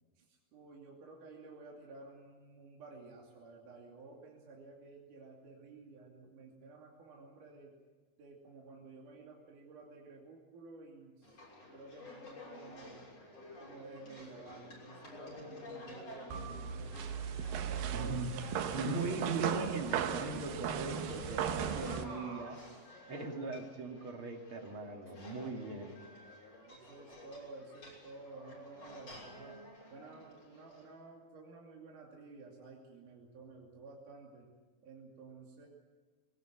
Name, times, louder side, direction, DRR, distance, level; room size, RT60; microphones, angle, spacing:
voice 1, 0.5-7.8 8.2-11.4 11.7-13.1 13.6-17.2 17.7-19.2 20.9-22.8 26.6-29.6 29.9-34.5 34.8-35.7, right 3 dB, 65° right, -2 dB, 4.2 m, -52 dB
sound 1, 11.2-30.9, left 2 dB, 45° left, 7.3 m, -52 dB
sound 2, 16.3-22.0, right 8 dB, 80° right, 2.9 m, -37 dB
voice 2, 17.9-18.3 18.7-22.6 23.1-26.0, right 3 dB, 40° right, 3 dB, 2.7 m, -39 dB
21.5 x 19.0 x 9.2 m, 1.3 s
omnidirectional pair, 4.0 m